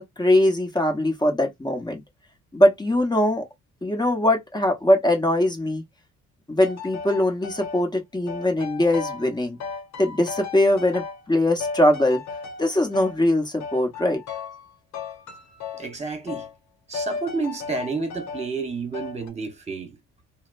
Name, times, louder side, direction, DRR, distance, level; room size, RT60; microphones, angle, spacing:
voice 1, 0.0-2.0 2.5-3.4 3.8-5.8 6.5-9.6 10.0-12.2 12.6-14.2, left 1 dB, 15° left, 1.0 m, -21 dB
sound 1, 6.6-7.8 8.3-9.3 9.6-11.3 11.6-13.2 13.6-14.7 14.9-15.9 16.3-16.5 16.9-18.5 18.9-19.3, left 5 dB, 70° left, 0.8 m, -35 dB
voice 2, 15.7-16.5 16.9-20.0, right 4 dB, 20° right, 1.2 m, -30 dB
2.7 x 2.1 x 2.5 m
cardioid pair, 90°, 30 cm